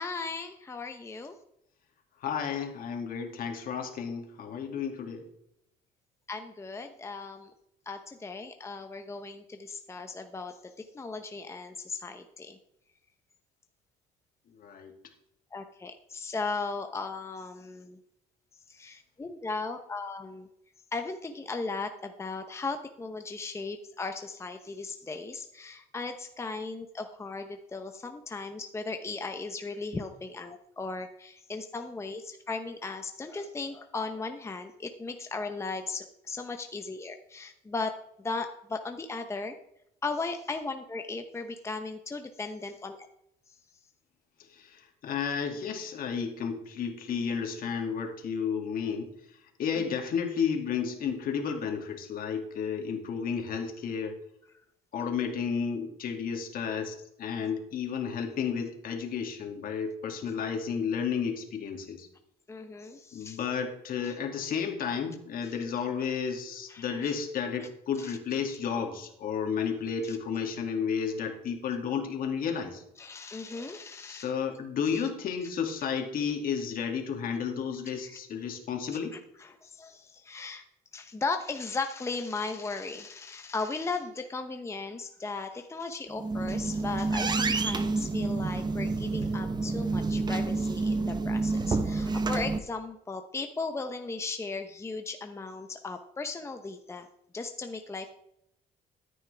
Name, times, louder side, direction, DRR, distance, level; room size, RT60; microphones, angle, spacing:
voice 1, 0.0-1.4 6.3-7.5 7.9-12.6 15.5-18.0 18.7-20.5 20.9-39.5 40.0-43.0 43.5-43.6 49.7-49.8 62.5-63.4 64.0-64.1 65.4-65.5 66.7-67.1 67.6-67.7 68.0-68.2 70.1-70.2 73.0-74.3 74.9-75.0 78.0-78.2 79.4-80.6 80.9-97.1 97.3-98.1, left 3 dB, 15° left, 6 dB, 0.8 m, -37 dB
voice 2, 2.2-5.3 14.5-14.9 44.5-54.2 54.9-62.1 63.1-72.8 74.0-79.2, left 6 dB, 60° left, 3 dB, 2.4 m, -32 dB
sound 1, 86.1-92.6, right 3 dB, 25° right, 0.8 m, -29 dB
13.5 x 9.4 x 3.4 m, 0.78 s
cardioid pair, 110°, 17 cm